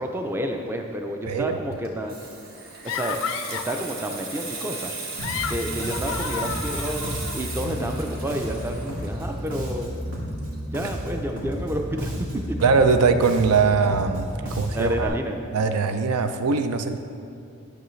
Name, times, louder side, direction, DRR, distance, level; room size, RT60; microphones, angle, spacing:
voice 1, 0.0-2.3 2.8-3.2 3.5-4.9 5.5-9.9 10.7-12.6 14.4-15.4, equal, 10° right, 4 dB, 0.4 m, -30 dB
voice 2, 1.3-1.6 12.6-15.2 15.5-17.0, right 4 dB, 90° right, 8 dB, 0.5 m, -21 dB
Water tap faucet / Sink (filling or washing), 1.7-11.0 11.3-11.6, right 3 dB, 45° right, 1.0 m, -36 dB
sound 1, 2.9-3.8 5.0-7.4, left 7 dB, 65° left, 0.3 m, -32 dB
Bass guitar, 5.2-15.1, equal, 70° right, 1.6 m, -32 dB
10.5 x 6.1 x 3.2 m, 2.5 s
head